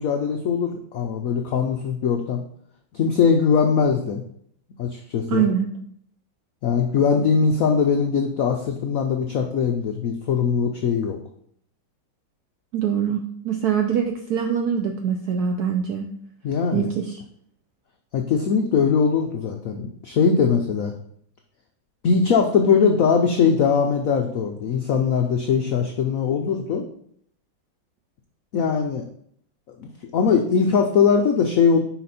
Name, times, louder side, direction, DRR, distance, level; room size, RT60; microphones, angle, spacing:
voice 1, 0.0-2.4 2.9-4.2 4.8-5.4 6.6-11.2 16.4-16.9 18.1-20.9 22.0-26.8 28.5-29.0 29.8-31.8, left 6 dB, 80° left, 4 dB, 0.7 m, -21 dB
voice 2, 5.3-5.7 12.7-16.1 16.7-17.2, right 8 dB, 80° right, 4 dB, 0.8 m, -23 dB
5.9 x 5.0 x 4.1 m, 0.66 s
omnidirectional pair, 2.2 m